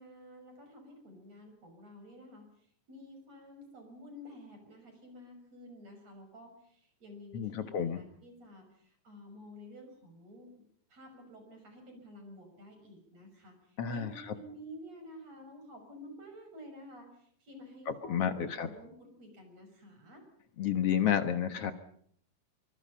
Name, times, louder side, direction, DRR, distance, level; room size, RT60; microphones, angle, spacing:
voice 1, 0.0-2.5 2.9-10.5 10.9-20.2, equal, 50° right, 5 dB, 7.4 m, -51 dB
voice 2, 7.3-8.0 13.8-14.1 17.9-18.7 20.6-21.7, left 8 dB, 55° left, 9 dB, 2.1 m, -30 dB
26.0 x 25.0 x 5.6 m, 0.63 s
omnidirectional pair, 3.8 m